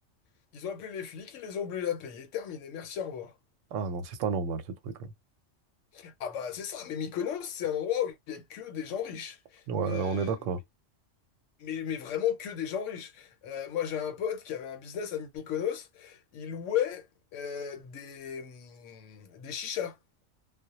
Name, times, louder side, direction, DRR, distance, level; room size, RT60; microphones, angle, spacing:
voice 1, 0.5-3.3 5.9-10.4 11.6-17.1 17.3-20.0, left 9 dB, 85° left, 1.0 m, -35 dB
voice 2, 3.7-5.1 9.7-10.6, right 5 dB, 85° right, 0.9 m, -31 dB
2.2 x 2.0 x 2.8 m
omnidirectional pair, 1.2 m